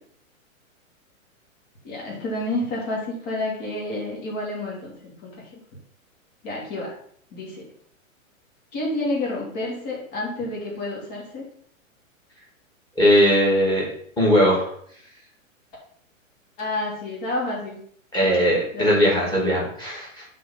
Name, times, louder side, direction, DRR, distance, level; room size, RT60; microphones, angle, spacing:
voice 1, 1.8-5.3 6.4-6.9 7.3-7.7 8.7-11.4 16.6-17.8 18.2-18.4 18.7-19.1, left 2 dB, 35° left, -4 dB, 2.9 m, -29 dB
voice 2, 13.0-13.9 14.2-14.7 18.1-20.2, equal, 10° left, -4 dB, 2.6 m, -19 dB
7.3 x 4.3 x 5.5 m, 0.62 s
hypercardioid pair, 145°, 41 cm